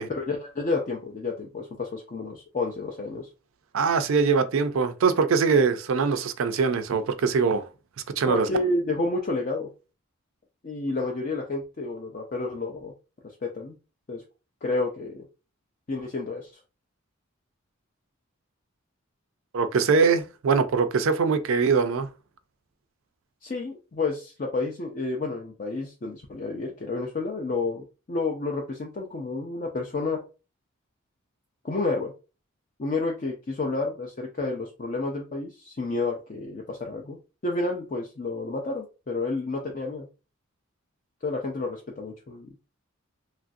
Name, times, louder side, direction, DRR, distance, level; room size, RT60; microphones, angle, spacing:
voice 1, 0.0-3.3 8.3-9.7 10.6-12.9 13.2-13.8 14.1-14.2 14.6-15.3 15.9-16.5 23.4-30.2 31.6-32.1 32.8-37.2 37.4-40.1 41.2-42.6, left 3 dB, 35° left, 0.4 m, -30 dB
voice 2, 3.7-7.7 8.2-8.5 19.5-22.1, right 5 dB, 70° right, 0.4 m, -22 dB
3.0 x 2.5 x 2.5 m
head